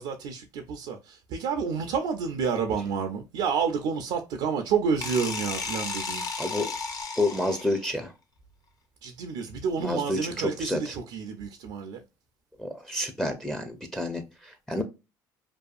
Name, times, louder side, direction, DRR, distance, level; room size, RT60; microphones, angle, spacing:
voice 1, 0.0-6.3 9.0-12.0, right 6 dB, 75° right, 0.4 m, -29 dB
sound 1, 5.0-7.9, left 4 dB, 45° left, 0.7 m, -34 dB
voice 2, 7.2-8.1 9.8-10.9 12.6-14.2 14.7-14.8, left 1 dB, 5° left, 0.5 m, -29 dB
2.6 x 2.3 x 2.3 m
supercardioid pair, 85°, 9 cm